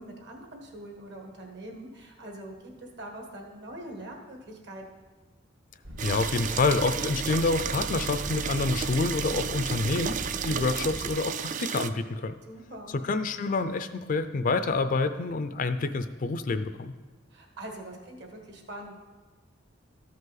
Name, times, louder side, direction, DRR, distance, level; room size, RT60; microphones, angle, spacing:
voice 1, 0.0-5.0 12.4-13.0 17.3-19.0, right 1 dB, 60° right, 2 dB, 1.4 m, -43 dB
sound 1, 5.8-11.1, right 1 dB, 80° right, 1.9 m, -39 dB
voice 2, 6.0-12.3 13.0-16.9, left 3 dB, 45° left, 10 dB, 0.4 m, -27 dB
sound 2, 6.0-11.9, right 7 dB, 40° right, 0.3 m, -33 dB
13.0 x 5.3 x 4.0 m, 1.3 s
head